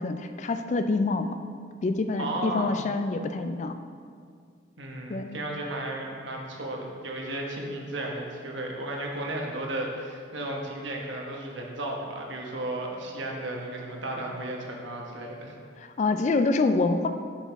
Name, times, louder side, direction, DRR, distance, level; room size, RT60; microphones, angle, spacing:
voice 1, 0.0-1.4 1.8-3.8 5.1-5.4 15.8-17.1, left 3 dB, 40° left, 8 dB, 0.3 m, -26 dB
voice 2, 2.2-2.7 4.8-15.6, right 1 dB, 75° right, 0 dB, 1.1 m, -34 dB
7.9 x 6.2 x 3.5 m, 2.1 s
head